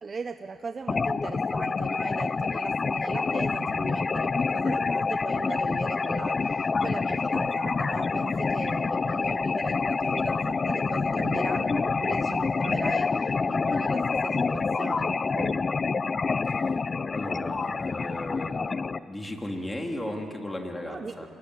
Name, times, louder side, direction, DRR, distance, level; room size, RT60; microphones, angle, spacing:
voice 1, 0.0-15.6 20.9-21.3, right 4 dB, 35° right, 9 dB, 0.8 m, -38 dB
sound 1, 0.9-19.0, left 4 dB, 35° left, 0.6 m, -27 dB
voice 2, 16.5-16.8 17.1-18.7 19.0-21.3, left 1 dB, 15° left, 2 dB, 3.2 m, -35 dB
26.5 x 22.5 x 9.4 m, 2.8 s
cardioid pair, 90°, 0 cm